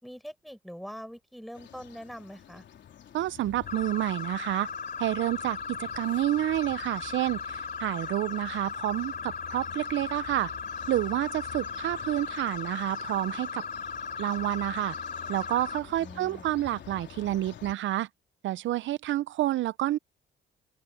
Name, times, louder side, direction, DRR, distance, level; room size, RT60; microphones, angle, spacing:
voice 1, 0.0-2.6 16.0-16.4, equal, ahead, 6.0 m, -43 dB
sound 1, 1.5-17.7, left 9 dB, 65° left, 3.7 m, -49 dB
voice 2, 3.1-4.7 5.0-10.5 10.9-13.6 14.2-15.0 15.3-18.1 18.4-20.0, right 14 dB, 75° right, 0.6 m, -29 dB
sound 2, 3.7-15.8, left 5 dB, 50° left, 4.4 m, -37 dB
open air
cardioid pair, 90°, 20 cm